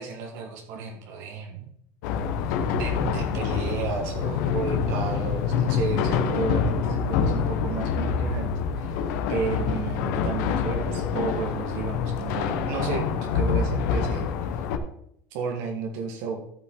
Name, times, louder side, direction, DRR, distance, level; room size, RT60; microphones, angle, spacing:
voice 1, 0.0-1.7 2.7-8.9 9.3-14.3 15.3-16.4, right 5 dB, 75° right, 2 dB, 1.6 m, -32 dB
sound 1, 2.0-14.8, left 6 dB, 80° left, 1.1 m, -26 dB
14.5 x 5.7 x 3.8 m, 0.72 s
cardioid pair, 140°, 9 cm